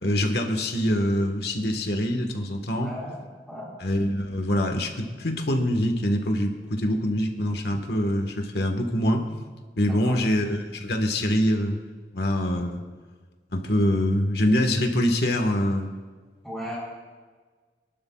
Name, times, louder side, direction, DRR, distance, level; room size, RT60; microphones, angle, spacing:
voice 1, 0.0-2.9 3.8-9.3 9.8-11.8 12.1-12.8 13.5-15.9, equal, 65° left, 4 dB, 1.5 m, -24 dB
voice 2, 2.7-3.8 9.8-10.2 16.4-16.8, equal, ahead, -6 dB, 3.6 m, -37 dB
23.0 x 12.0 x 2.4 m, 1.5 s
head